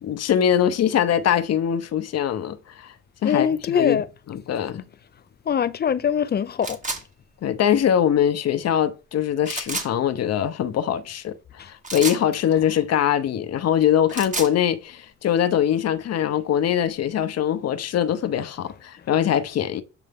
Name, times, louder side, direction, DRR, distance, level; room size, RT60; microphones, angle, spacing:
voice 1, 0.0-2.9 3.2-4.0 4.3-4.8 7.4-19.8, left 9 dB, 55° left, 0.8 m, -22 dB
voice 2, 3.2-4.1 5.5-6.8 11.6-11.7, left 8 dB, 35° left, 0.4 m, -23 dB
sound 1, 6.6-7.0 9.4-9.9 11.8-12.2 13.9-14.5, right 3 dB, 25° right, 1.1 m, -29 dB
7.9 x 3.3 x 3.5 m
cardioid pair, 90°, 30 cm